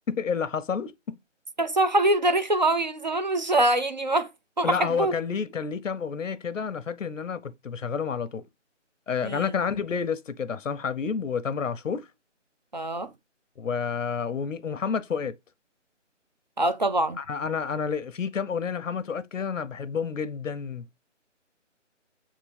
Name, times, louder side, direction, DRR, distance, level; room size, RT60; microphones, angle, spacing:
voice 1, 0.1-1.1 4.6-8.4 9.1-12.1 13.6-15.3 17.2-20.9, left 6 dB, 85° left, 0.8 m, -30 dB
voice 2, 1.6-4.3 4.6-5.1 9.2-9.5 12.7-13.1 16.6-17.2, right 1 dB, 35° right, 0.5 m, -24 dB
7.5 x 3.7 x 3.4 m
hypercardioid pair, 170°, 37 cm